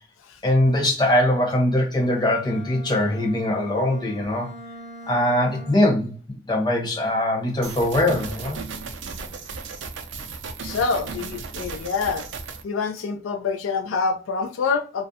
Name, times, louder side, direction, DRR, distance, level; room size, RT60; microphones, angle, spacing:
voice 1, 0.4-4.5 5.1-6.1 6.5-8.6, left 1 dB, 20° left, 0.7 m, -21 dB
Bowed string instrument, 2.0-6.1, right 1 dB, 55° left, 1.0 m, -42 dB
sound 1, 7.6-12.6, right 4 dB, 60° right, 0.4 m, -35 dB
voice 2, 10.6-12.2 12.6-15.0, left 4 dB, 75° left, 0.3 m, -26 dB
2.4 x 2.1 x 2.6 m
head